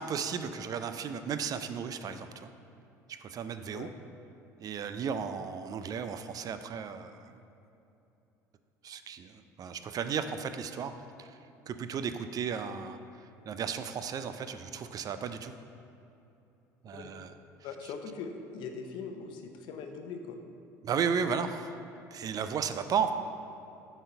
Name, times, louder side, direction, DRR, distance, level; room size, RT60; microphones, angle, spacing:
voice 1, 0.0-2.5 3.1-3.9 4.6-7.4 8.8-10.9 11.2-11.4 11.7-15.5 16.8-17.3 20.8-21.8 22.1-23.1, right 6 dB, 45° right, 9 dB, 0.4 m, -34 dB
voice 2, 17.6-20.4, left 5 dB, 65° left, 5 dB, 0.7 m, -41 dB
7.7 x 4.1 x 5.0 m, 2.8 s
hypercardioid pair, 65°, 9 cm